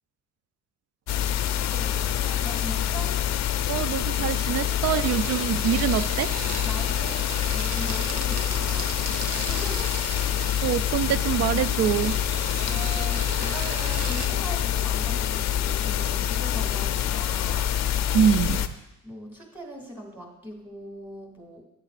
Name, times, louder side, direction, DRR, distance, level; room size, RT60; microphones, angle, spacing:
sound 1, 1.1-18.7, left 10 dB, 60° left, 0.5 m, -26 dB
voice 1, 1.5-3.2 6.6-10.2 12.7-18.2 19.0-21.6, right 1 dB, 5° right, 0 dB, 2.3 m, -41 dB
voice 2, 3.7-6.4 10.6-12.2 18.1-18.7, right 9 dB, 55° right, 15 dB, 0.4 m, -24 dB
sound 2, 4.0-14.3, right 5 dB, 90° right, 1.0 m, -38 dB
11.0 x 8.7 x 2.5 m, 0.90 s
cardioid pair, 90°, 30 cm